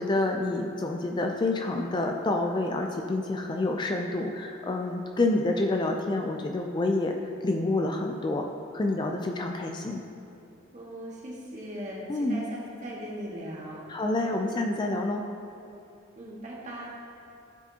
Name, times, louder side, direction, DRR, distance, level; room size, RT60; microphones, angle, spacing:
voice 1, 0.0-7.2 7.4-8.5 8.7-10.0 12.1-12.4 13.9-15.2, left 2 dB, 20° left, 3 dB, 0.3 m, -28 dB
voice 2, 10.7-13.9 16.1-16.9, equal, 35° right, -5 dB, 1.7 m, -39 dB
13.0 x 4.8 x 2.8 m, 2.9 s
head